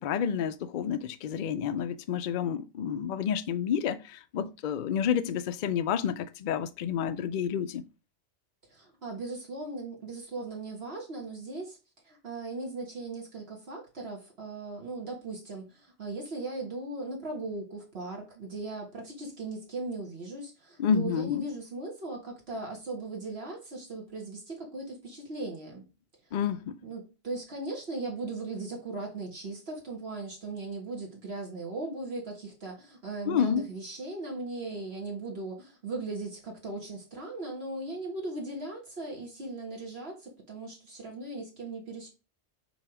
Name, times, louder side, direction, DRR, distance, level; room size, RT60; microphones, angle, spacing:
voice 1, 0.0-7.8 20.8-21.5 26.3-26.8 33.3-33.7, left 8 dB, 55° left, 0.6 m, -29 dB
voice 2, 8.7-11.8 12.0-25.8 26.8-42.1, right 2 dB, 60° right, 1.7 m, -38 dB
7.0 x 3.0 x 4.8 m
omnidirectional pair, 1.2 m